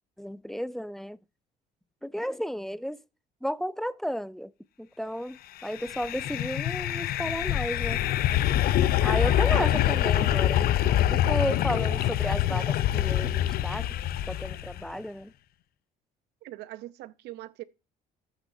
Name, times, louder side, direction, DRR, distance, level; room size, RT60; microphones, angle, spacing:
voice 1, 0.2-1.2 2.0-3.0 3.4-4.5 4.8-8.0 9.0-13.9 14.3-15.3, equal, ahead, 0.4 m, -33 dB
sound 1, 5.7-14.8, left 12 dB, 65° left, 0.6 m, -25 dB
voice 2, 16.4-17.6, right 16 dB, 85° right, 0.7 m, -40 dB
14.0 x 6.2 x 2.7 m
cardioid pair, 110°, 17 cm